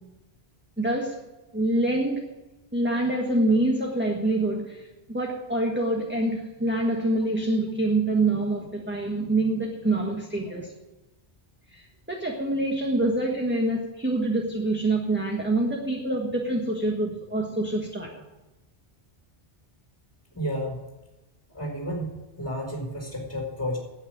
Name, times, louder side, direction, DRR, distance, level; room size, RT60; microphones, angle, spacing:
voice 1, 0.8-1.2 1.5-2.2 2.7-10.7 11.7-18.2, right 2 dB, 10° right, 0 dB, 1.5 m, -26 dB
voice 2, 20.3-20.8 21.5-22.1 22.4-23.8, equal, 15° left, -1 dB, 4.3 m, -31 dB
9.9 x 9.0 x 9.2 m, 1.1 s
omnidirectional pair, 1.1 m